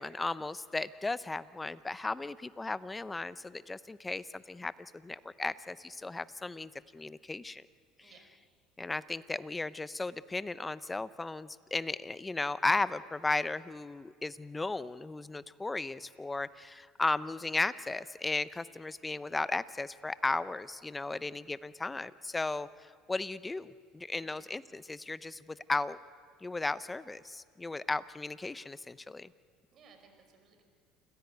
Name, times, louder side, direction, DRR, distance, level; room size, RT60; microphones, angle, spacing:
voice 1, 0.0-7.6 8.8-26.0 26.4-29.3, left 3 dB, 15° left, 16 dB, 0.7 m, -35 dB
voice 2, 29.7-30.6, right 5 dB, 50° right, 6 dB, 5.2 m, -61 dB
28.5 x 16.0 x 8.1 m, 2.1 s
supercardioid pair, 90°, 0 cm